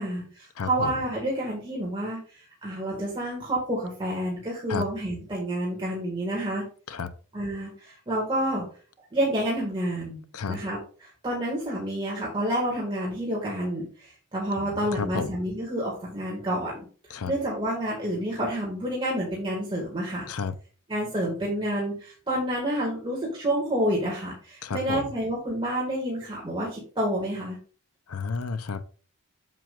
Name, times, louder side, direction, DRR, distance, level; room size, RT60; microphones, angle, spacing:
voice 1, 0.0-2.2 2.6-6.6 7.3-8.6 9.1-10.2 10.5-16.8 17.3-20.2 20.9-27.6, right 1 dB, 25° right, 2.0 m, -29 dB
voice 2, 0.6-0.9 4.7-4.9 6.9-7.1 10.3-10.6 14.6-15.3 17.1-17.3 20.3-20.5 24.6-25.1 28.1-28.8, left 5 dB, 80° left, 0.7 m, -31 dB
7.5 x 7.4 x 2.5 m
head